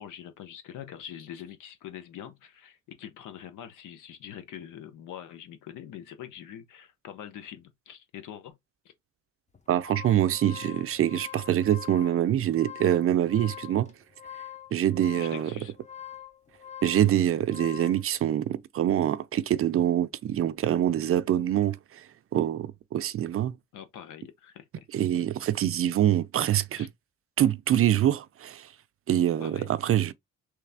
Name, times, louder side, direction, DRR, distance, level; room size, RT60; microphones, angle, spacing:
voice 1, 0.0-8.6 15.2-15.7 23.7-24.9 26.7-26.9 29.4-29.7, left 10 dB, 90° left, 0.9 m, -44 dB
sound 1, 9.5-18.0, left 11 dB, 25° left, 0.8 m, -44 dB
voice 2, 9.7-13.9 14.7-15.5 16.8-22.1 22.3-23.5 24.9-26.9 27.4-28.7 29.1-30.1, right 11 dB, 50° right, 0.5 m, -25 dB
3.3 x 3.1 x 3.4 m
cardioid pair, 90°, 30 cm